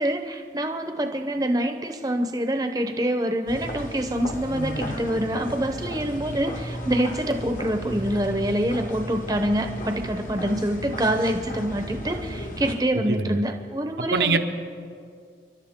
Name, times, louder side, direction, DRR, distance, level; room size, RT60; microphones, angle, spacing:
voice 1, 0.0-14.4, right 1 dB, 20° right, 6 dB, 0.8 m, -26 dB
sound 1, 3.5-12.7, left 1 dB, 45° left, 1.2 m, -34 dB
voice 2, 13.1-13.4 14.0-14.4, right 4 dB, 80° right, 5 dB, 1.0 m, -23 dB
29.5 x 11.5 x 3.7 m, 2.2 s
head